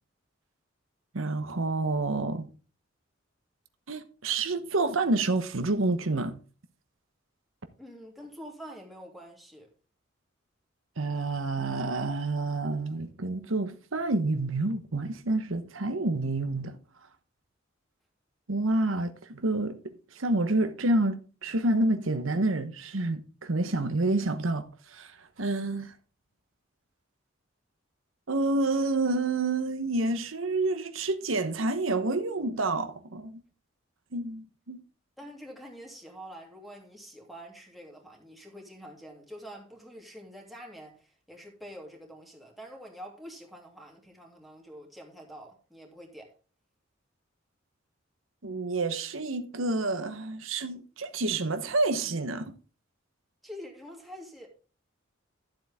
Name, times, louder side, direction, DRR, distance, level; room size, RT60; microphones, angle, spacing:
voice 1, 1.1-2.5 3.9-6.4 11.0-16.8 18.5-25.9 28.3-33.4 34.1-34.8 48.4-52.5, right 2 dB, 85° right, 1.1 m, -28 dB
voice 2, 7.8-9.7 35.2-46.3 53.4-54.5, equal, ahead, 2.9 m, -46 dB
12.5 x 7.7 x 3.6 m
head